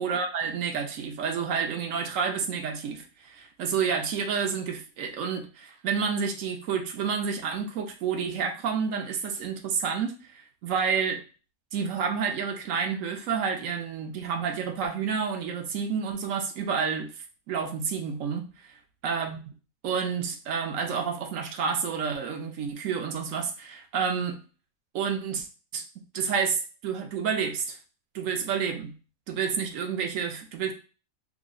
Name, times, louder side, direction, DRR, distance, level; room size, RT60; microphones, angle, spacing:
voice 1, 0.0-11.2 11.7-17.1 17.5-18.8 19.0-19.4 19.8-24.4 24.9-25.5 25.7-25.8 26.1-27.8 28.1-28.9 29.3-30.7, right 6 dB, 70° right, 5 dB, 1.0 m, -29 dB
3.4 x 2.0 x 3.8 m, 0.35 s
omnidirectional pair, 1.5 m